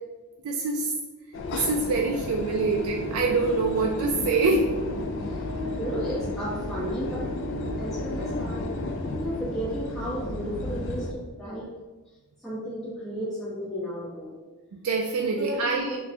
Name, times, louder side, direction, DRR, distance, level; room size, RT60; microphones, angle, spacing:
voice 1, 0.4-0.9 1.5-4.7 14.7-16.0, right 3 dB, 70° right, 0 dB, 0.3 m, -25 dB
sound 1, 1.3-11.1, left 2 dB, 55° left, 0.3 m, -32 dB
voice 2, 5.8-7.2 7.8-8.7 9.1-11.6 12.4-14.3 15.2-16.0, equal, ahead, -12 dB, 1.3 m, -33 dB
4.2 x 2.2 x 2.7 m, 1.2 s
head